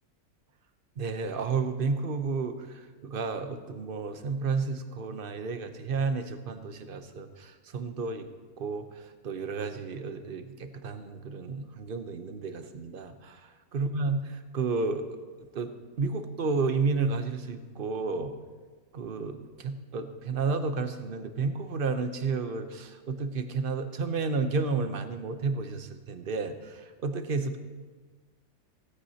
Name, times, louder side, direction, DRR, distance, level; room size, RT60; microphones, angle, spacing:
voice 1, 1.0-8.3 8.6-15.1 15.4-18.3 18.9-27.6, right 4 dB, 45° right, 8 dB, 0.8 m, -32 dB
17.0 x 15.0 x 2.8 m, 1.4 s
omnidirectional pair, 1.6 m